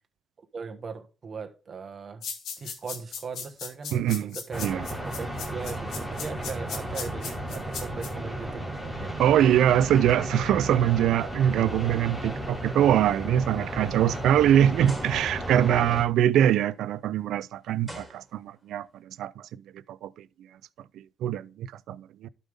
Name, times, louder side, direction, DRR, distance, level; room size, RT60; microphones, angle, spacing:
voice 1, 0.5-2.2 2.6-4.7 5.2-9.2, right 5 dB, 45° right, 1.4 m, -39 dB
sound 1, 2.2-8.1, left 6 dB, 75° left, 2.3 m, -37 dB
voice 2, 3.9-4.9 9.2-20.5 20.9-22.3, right 10 dB, 80° right, 0.4 m, -24 dB
sound 2, 4.5-16.0, right 1 dB, 10° left, 2.7 m, -34 dB
sound 3, 11.7-12.0 12.5-12.7 13.3-13.4 14.8-15.6 17.0-17.1 17.8-18.7, right 1 dB, 10° right, 3.6 m, -44 dB
12.0 x 5.5 x 3.5 m
cardioid pair, 90°, 0 cm